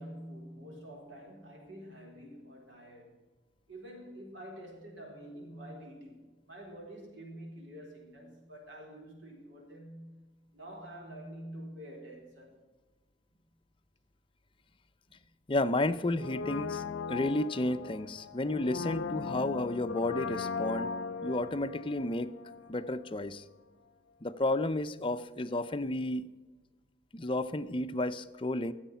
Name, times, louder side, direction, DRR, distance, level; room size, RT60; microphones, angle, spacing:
voice 1, 0.0-3.2 3.7-10.2 10.5-12.6 15.1-15.2, right 1 dB, 75° right, -1 dB, 4.0 m, -47 dB
voice 2, 15.5-20.9 21.2-22.3 22.7-23.4 24.2-26.3 27.1-28.7, left 2 dB, 25° left, 11 dB, 0.5 m, -32 dB
Brass instrument, 16.1-23.0 23.3-23.4, left 5 dB, 75° left, 0.5 m, -38 dB
14.5 x 8.0 x 5.6 m, 1.3 s
head